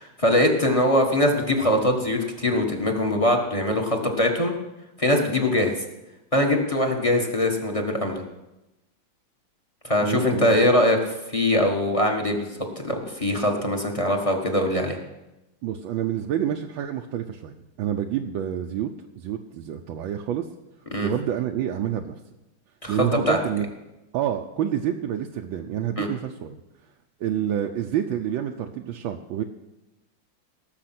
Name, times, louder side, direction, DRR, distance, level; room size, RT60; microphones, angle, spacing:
voice 1, 0.0-4.5 5.0-5.7 6.3-8.2 9.8-12.5 12.8-15.0 20.9-21.1 22.8-23.4 26.0-26.1, left 1 dB, 20° left, 3 dB, 1.3 m, -22 dB
voice 2, 10.0-10.5 15.6-18.9 19.2-20.5 21.0-22.2 22.9-23.7 24.1-26.6 27.2-29.4, right 10 dB, 75° right, 3 dB, 1.4 m, -28 dB
18.5 x 7.0 x 5.9 m, 0.98 s
omnidirectional pair, 2.2 m